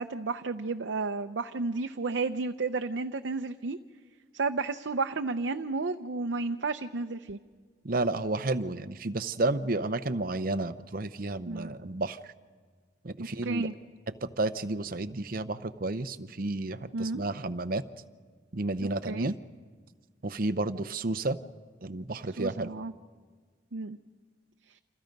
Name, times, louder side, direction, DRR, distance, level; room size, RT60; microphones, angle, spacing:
voice 1, 0.0-3.8 4.3-7.4 11.5-11.7 13.4-13.7 16.9-17.2 18.8-19.3 22.4-22.9 23.7-24.0, right 3 dB, 80° right, 6 dB, 0.7 m, -32 dB
voice 2, 7.8-12.2 13.0-13.7 14.2-17.8 18.5-19.3 20.2-21.4 21.8-22.7, right 2 dB, 50° right, 11 dB, 0.8 m, -31 dB
29.0 x 27.0 x 5.3 m, 1.5 s
head